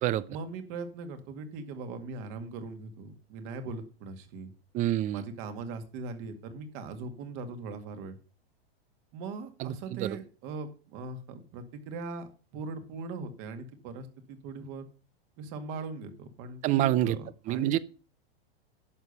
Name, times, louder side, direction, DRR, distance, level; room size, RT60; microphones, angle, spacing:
voice 1, 0.3-4.5 5.1-8.2 9.1-14.9 15.4-17.8, right 4 dB, 45° right, 2.1 m, -40 dB
voice 2, 4.7-5.2 9.6-10.1 16.6-17.2 17.5-17.8, right 13 dB, 25° right, 0.5 m, -27 dB
11.0 x 6.7 x 5.5 m
hypercardioid pair, 140°, 31 cm